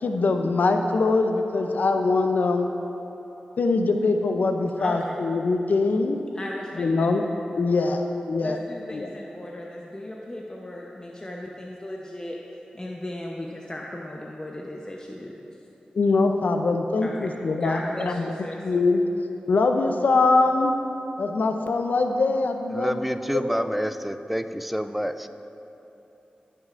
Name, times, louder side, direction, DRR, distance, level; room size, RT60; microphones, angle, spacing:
voice 1, 0.0-2.7 3.6-6.2 6.8-7.2 7.6-8.0 8.3-8.6 8.9-9.1 15.9-18.3 18.6-19.0 19.5-20.7 21.2-23.0 23.3-23.6, left 3 dB, 75° left, 5 dB, 0.5 m, -23 dB
voice 2, 4.8-5.2 6.3-7.1 7.8-8.0 8.4-12.4 12.7-15.4 17.0-18.6, left 1 dB, 25° left, -2 dB, 0.8 m, -36 dB
voice 3, 22.7-25.3, equal, 5° right, 10 dB, 0.4 m, -28 dB
16.0 x 6.4 x 2.5 m, 3.0 s
cardioid pair, 45°, 3 cm